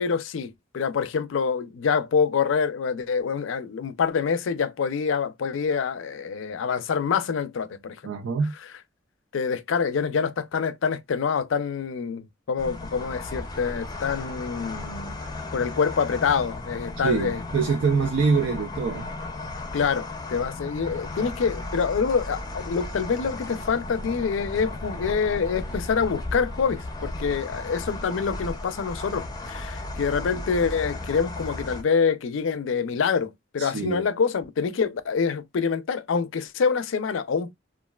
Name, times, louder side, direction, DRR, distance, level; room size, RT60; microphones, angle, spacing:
voice 1, 0.0-8.1 9.3-15.2 15.5-17.4 19.7-37.5, left 6 dB, 85° left, 0.4 m, -26 dB
voice 2, 8.0-8.5 17.0-19.1 33.6-34.1, right 5 dB, 75° right, 0.5 m, -24 dB
sound 1, 12.6-31.8, left 2 dB, 20° left, 0.5 m, -35 dB
3.0 x 2.3 x 2.2 m
head